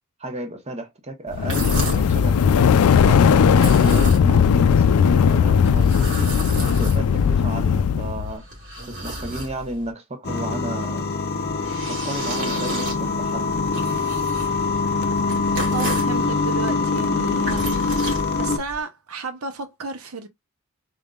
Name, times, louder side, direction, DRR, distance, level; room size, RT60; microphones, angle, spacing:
voice 1, 0.2-2.7 3.0-6.3 6.8-8.5 8.9-11.1 11.9-13.7, right 1 dB, 30° right, 1.0 m, -33 dB
sound 1, 1.3-8.3, left 7 dB, 85° left, 0.4 m, -17 dB
sound 2, 1.3-2.2 3.5-4.5 5.6-7.3 8.1-9.9 11.3-16.2 17.2-18.8, right 1 dB, 60° right, 2.2 m, -33 dB
sound 3, 10.2-18.6, left 3 dB, 50° left, 0.7 m, -24 dB
voice 2, 15.7-20.3, right 4 dB, 80° right, 0.8 m, -33 dB
3.8 x 3.5 x 2.4 m
head